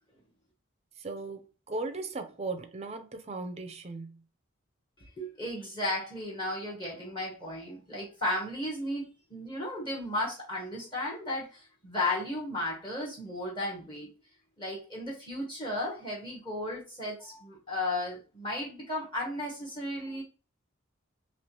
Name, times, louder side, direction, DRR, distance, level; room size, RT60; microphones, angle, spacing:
voice 1, 1.0-1.4 1.7-4.2, right 3 dB, 30° right, 0.5 m, -37 dB
voice 2, 5.0-9.0 9.3-14.1 14.6-20.2, left 1 dB, 25° left, 0.9 m, -34 dB
3.2 x 2.9 x 2.9 m
head